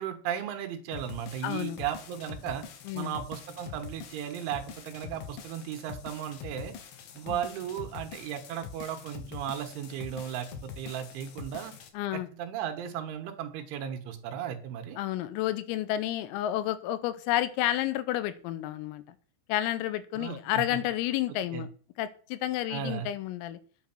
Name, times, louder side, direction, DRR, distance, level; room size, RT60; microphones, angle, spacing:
voice 1, 0.0-2.7 2.9-6.7 7.1-11.7 12.1-15.0 20.2-20.8 21.3-21.7 22.7-23.1, right 9 dB, 75° right, 7 dB, 3.4 m, -36 dB
sound 1, 0.9-11.9, left 7 dB, 70° left, 2.2 m, -44 dB
voice 2, 1.4-1.8 2.9-3.1 7.3-7.4 11.9-12.3 15.0-19.0 19.5-21.7 22.0-23.6, left 13 dB, 85° left, 14 dB, 3.5 m, -30 dB
9.6 x 8.7 x 5.9 m, 0.42 s
omnidirectional pair, 6.0 m